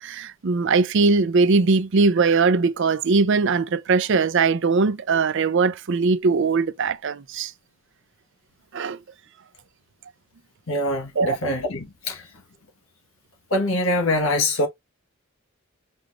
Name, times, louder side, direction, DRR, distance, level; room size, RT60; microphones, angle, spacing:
voice 1, 0.0-7.5 8.7-9.0 11.2-11.4, right 4 dB, 60° right, 0.5 m, -20 dB
voice 2, 10.7-12.2 13.5-14.7, left 1 dB, 75° left, 1.2 m, -23 dB
6.2 x 3.0 x 2.4 m
head